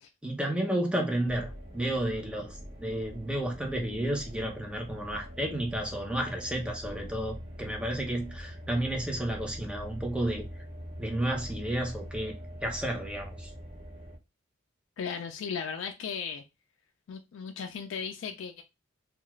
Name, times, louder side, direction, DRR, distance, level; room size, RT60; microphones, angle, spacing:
voice 1, 0.2-10.4 11.0-12.3 12.6-13.5, right 1 dB, 5° right, 0.6 m, -32 dB
sound 1, 1.2-14.2, equal, 30° right, 0.9 m, -43 dB
voice 2, 15.0-16.4 17.1-18.6, left 6 dB, 85° left, 0.3 m, -36 dB
2.3 x 2.3 x 3.0 m
head